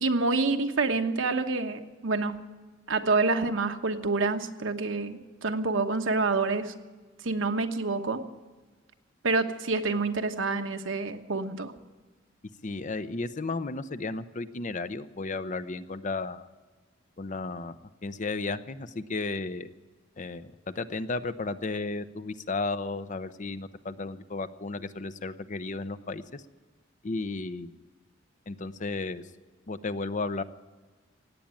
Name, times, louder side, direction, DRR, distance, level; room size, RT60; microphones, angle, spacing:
voice 1, 0.0-2.4 2.9-6.7 7.2-8.2 9.2-11.7, right 3 dB, 75° right, 7 dB, 1.2 m, -27 dB
voice 2, 12.6-16.5 17.2-17.7 18.0-19.7 20.2-26.4 27.0-27.7 28.5-29.2 29.7-30.4, left 3 dB, 40° left, 12 dB, 0.7 m, -34 dB
17.5 x 8.6 x 9.0 m, 1.3 s
head